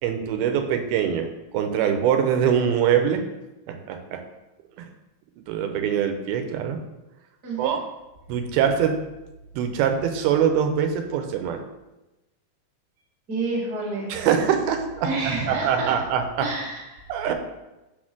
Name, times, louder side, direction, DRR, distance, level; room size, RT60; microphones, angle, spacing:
voice 1, 0.0-1.3 1.5-3.2 3.7-4.2 4.8-4.9 5.4-6.8 7.6-7.8 8.3-8.9 9.5-11.6 14.1-16.5 17.1-17.3, right 8 dB, 90° right, 6 dB, 2.6 m, -23 dB
voice 2, 7.4-7.8 13.3-14.1 15.0-16.0 16.4-17.0, right 3 dB, 40° right, -4 dB, 1.6 m, -29 dB
5.5 x 4.3 x 6.0 m, 1.0 s
omnidirectional pair, 4.3 m